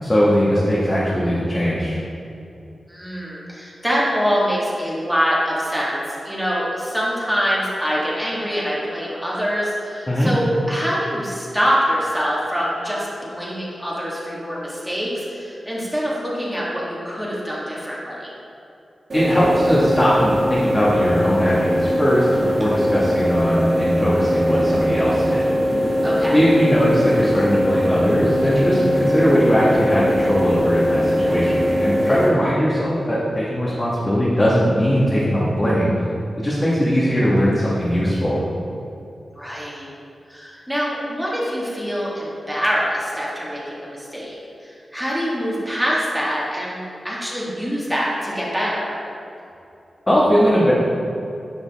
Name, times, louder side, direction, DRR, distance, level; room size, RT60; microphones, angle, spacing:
voice 1, 0.0-2.0 10.1-10.3 19.1-25.4 26.3-36.0 36.4-38.4 50.1-50.7, equal, 25° left, -8 dB, 1.6 m, -19 dB
voice 2, 2.9-6.0 6.2-18.3 26.0-26.4 32.3-32.4 39.4-39.9 40.3-44.4 44.6-49.0, equal, 5° right, -6 dB, 1.9 m, -24 dB
sound 1, 19.1-32.3, equal, 55° right, 1.7 m, -20 dB
10.0 x 5.3 x 3.6 m, 2.7 s
cardioid pair, 70°, 0 cm